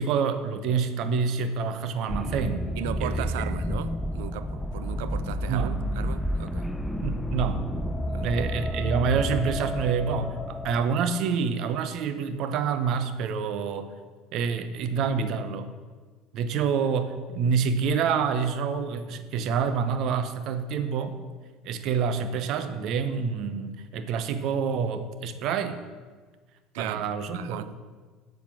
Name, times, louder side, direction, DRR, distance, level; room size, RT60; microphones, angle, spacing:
voice 1, 0.0-2.7 3.0-3.3 5.5-5.8 7.0-7.7 8.1-13.9 14.3-15.7 16.3-21.2 21.6-25.8 26.8-27.7, right 6 dB, 60° right, 0.8 m, -27 dB
sound 1, 2.1-10.8, equal, 10° left, 0.6 m, -30 dB
voice 2, 2.8-6.7 8.1-8.4 26.7-27.7, right 12 dB, 75° right, 0.4 m, -37 dB
7.4 x 5.7 x 7.2 m
hypercardioid pair, 80°, 0 cm